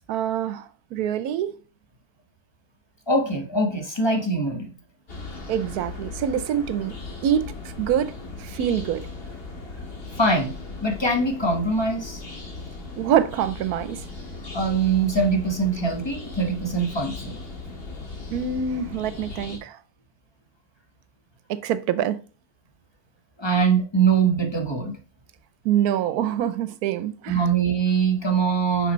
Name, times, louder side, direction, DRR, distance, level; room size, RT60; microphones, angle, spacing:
voice 1, 0.1-1.5 5.5-6.9 7.2-7.5 7.8-9.1 13.0-14.0 18.3-19.8 21.5-22.2 25.6-27.4, right 9 dB, 80° right, 1.1 m, -25 dB
voice 2, 3.1-4.7 10.2-10.5 10.8-12.2 14.5-17.4 23.4-24.9 27.3-28.9, right 4 dB, 20° left, 1.2 m, -22 dB
sound 1, 5.1-19.6, left 3 dB, 40° left, 1.8 m, -38 dB
5.9 x 5.7 x 3.1 m
omnidirectional pair, 1.6 m